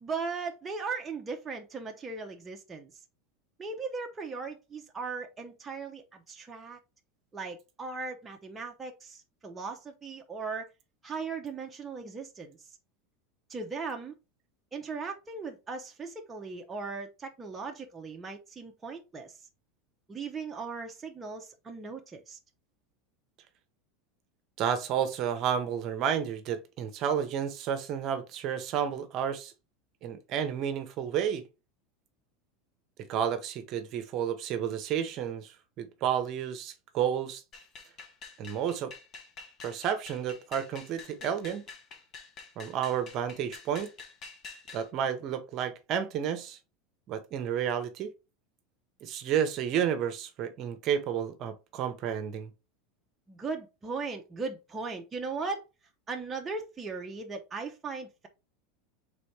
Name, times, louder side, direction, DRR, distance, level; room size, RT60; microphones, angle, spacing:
voice 1, 0.0-2.9 3.6-6.8 7.3-10.7 11.0-12.6 13.5-14.1 14.7-19.4 20.1-22.4 53.3-55.7 56.1-58.3, right 4 dB, 15° right, 0.6 m, -38 dB
voice 2, 24.6-29.5 30.0-31.4 33.1-37.4 38.4-38.9 39.6-41.6 42.6-43.9 44.7-46.6 47.1-48.1 49.0-52.5, right 8 dB, 45° right, 0.8 m, -31 dB
sound 1, 37.5-44.9, left 4 dB, 35° left, 1.1 m, -48 dB
4.1 x 3.6 x 3.2 m
supercardioid pair, 130°, 0 cm